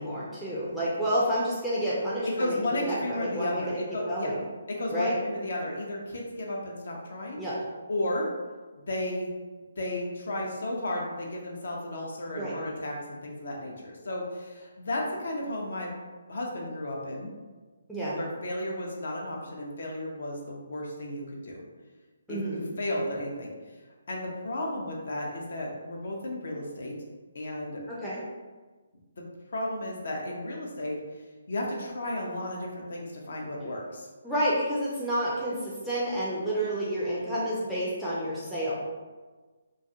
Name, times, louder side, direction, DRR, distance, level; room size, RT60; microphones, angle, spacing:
voice 1, 0.0-3.8 4.1-4.4 4.9-5.2 7.4-7.6 12.3-12.5 17.9-18.2 22.3-22.6 27.9-28.2 34.2-38.7, equal, ahead, -10 dB, 0.4 m, -29 dB
voice 2, 2.4-4.3 4.7-7.4 7.9-8.3 8.9-9.3 9.8-15.9 16.3-17.3 18.1-21.6 22.3-23.5 24.1-26.9 27.3-27.8 29.2-29.3 29.5-31.0 31.5-34.1, left 1 dB, 55° left, -1 dB, 0.5 m, -33 dB
2.3 x 2.3 x 2.7 m, 1.3 s
figure-of-eight pair, 140°, 0 cm